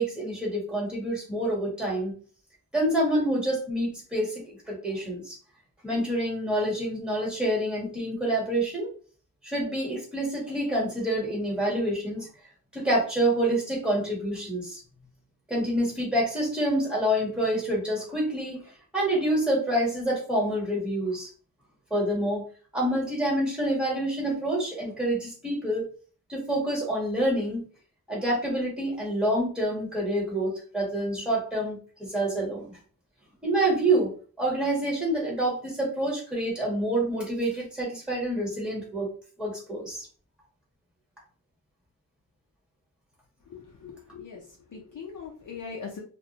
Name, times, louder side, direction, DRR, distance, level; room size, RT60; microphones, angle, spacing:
voice 1, 0.0-2.2 2.7-5.3 5.8-8.9 9.4-12.3 12.7-14.8 15.5-18.6 18.9-21.3 21.9-22.5 22.7-25.9 26.3-27.7 28.1-32.8 33.4-34.1 34.4-39.1 39.4-40.1, right 1 dB, ahead, -3 dB, 1.0 m, -27 dB
voice 2, 43.5-44.4 44.7-46.0, left 5 dB, 55° left, -1 dB, 0.6 m, -40 dB
2.2 x 2.1 x 2.7 m, 0.41 s
wide cardioid pair, 125°, 36 cm